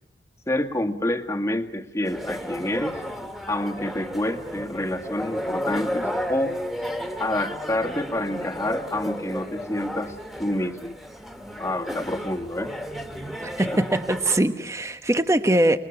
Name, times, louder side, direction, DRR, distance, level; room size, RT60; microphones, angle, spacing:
voice 1, 0.5-3.0 3.5-6.6 7.2-11.0 11.6-12.7 13.7-13.8, left 1 dB, 15° left, 4 dB, 1.8 m, -28 dB
sound 1, 2.0-14.4, equal, ahead, 2.0 m, -33 dB
voice 2, 13.4-15.8, right 1 dB, 15° right, 9 dB, 1.3 m, -22 dB
29.0 x 21.5 x 8.9 m, 0.72 s
head